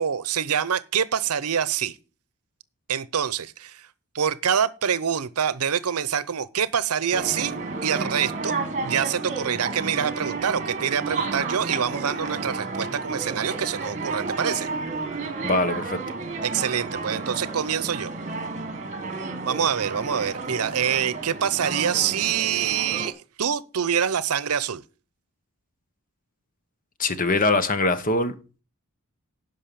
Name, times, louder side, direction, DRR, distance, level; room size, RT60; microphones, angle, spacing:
voice 1, 0.0-2.0 2.9-3.9 4.1-7.6 7.8-8.6 8.8-14.7 16.4-18.1 19.4-24.8, right 8 dB, 80° right, 0.7 m, -25 dB
sound 1, 7.1-23.1, right 3 dB, 35° right, 1.7 m, -32 dB
voice 2, 15.4-16.0 27.0-28.3, left 2 dB, 40° left, 1.0 m, -22 dB
11.5 x 5.5 x 6.9 m
head